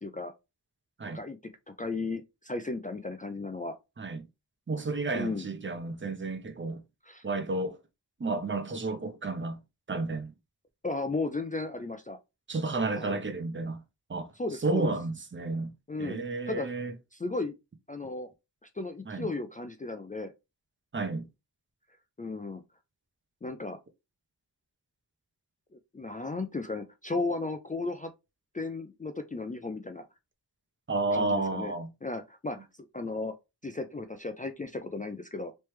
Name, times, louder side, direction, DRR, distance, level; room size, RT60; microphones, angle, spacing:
voice 1, 0.0-0.3 1.1-1.4 1.7-3.7 5.2-5.5 7.0-7.2 10.8-12.2 13.0-13.2 14.4-14.9 15.9-16.2 16.5-16.7 17.1-17.5 17.9-18.3 18.6-20.3 22.2-22.6 23.4-23.8 25.7-28.1 28.5-30.0 31.1-31.7 32.0-32.7 32.9-33.3 33.6-35.5, left 3 dB, 20° left, 0.4 m, -35 dB
voice 2, 4.0-4.3 4.7-6.8 7.2-7.8 8.2-9.6 9.9-10.3 12.5-13.8 14.1-14.3 14.6-15.7 16.0-16.9 19.1-19.3 20.9-21.3 30.9-31.9, right 3 dB, 30° right, 0.7 m, -31 dB
3.2 x 3.2 x 3.1 m
wide cardioid pair, 110°, 41 cm